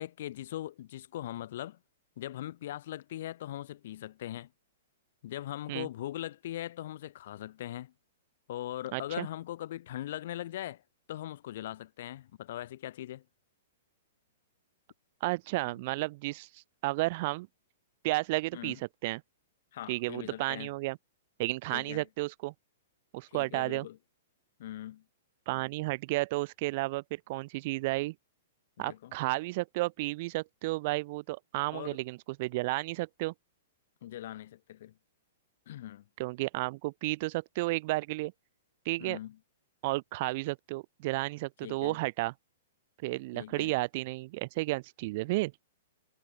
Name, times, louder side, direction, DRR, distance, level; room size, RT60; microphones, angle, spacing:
voice 1, 0.0-1.8 2.2-4.5 5.2-7.9 8.5-10.8 11.1-13.3 18.5-18.8 19.7-20.7 21.7-22.1 23.3-24.0 24.6-25.0 28.8-29.2 31.7-32.0 34.0-35.0 35.7-36.1 39.0-39.4 41.6-42.0 43.3-43.7, left 13 dB, 60° left, 3.7 m, -40 dB
voice 2, 8.9-9.3 15.2-17.5 18.0-18.8 19.0-19.2 19.9-21.0 21.4-22.5 23.1-23.9 25.5-28.1 28.8-33.3 36.2-38.3 38.8-39.2 39.8-42.3 43.0-45.5, right 22 dB, 45° right, 0.7 m, -32 dB
hypercardioid pair, 145°, 0 cm